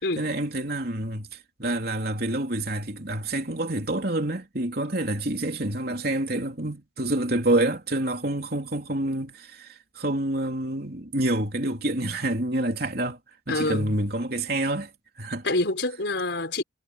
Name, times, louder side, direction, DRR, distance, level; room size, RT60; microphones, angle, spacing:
voice 1, 0.2-13.2 13.5-14.9 15.2-15.5, right 1 dB, 55° right, 3.4 m, -27 dB
voice 2, 13.5-14.0 15.4-16.6, left 2 dB, 65° left, 4.6 m, -26 dB
head